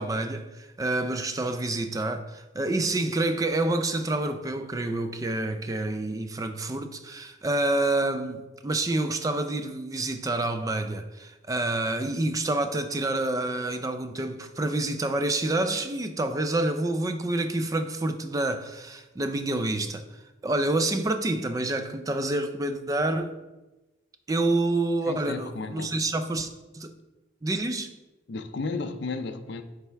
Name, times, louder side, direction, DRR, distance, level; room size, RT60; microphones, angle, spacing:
voice 1, 0.0-20.0 20.4-23.3 24.3-26.9 27.4-27.9, right 2 dB, 15° right, 0.3 m, -28 dB
voice 2, 25.1-25.9 28.3-29.6, left 3 dB, 60° left, 0.5 m, -33 dB
8.9 x 3.4 x 3.4 m
head